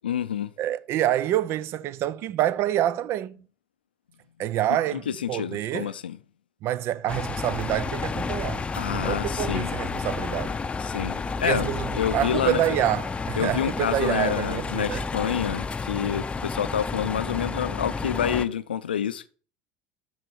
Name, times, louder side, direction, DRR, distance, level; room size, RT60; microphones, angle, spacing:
voice 1, 0.0-0.5 4.9-6.2 8.8-9.7 10.8-12.8 13.4-19.3, left 9 dB, 90° left, 0.4 m, -28 dB
voice 2, 0.6-3.4 4.4-5.9 6.6-10.5 11.4-15.0, right 12 dB, 55° right, 0.5 m, -27 dB
sound 1, 7.1-18.5, left 4 dB, 20° left, 0.6 m, -31 dB
12.0 x 4.1 x 4.5 m
hypercardioid pair, 70°, 5 cm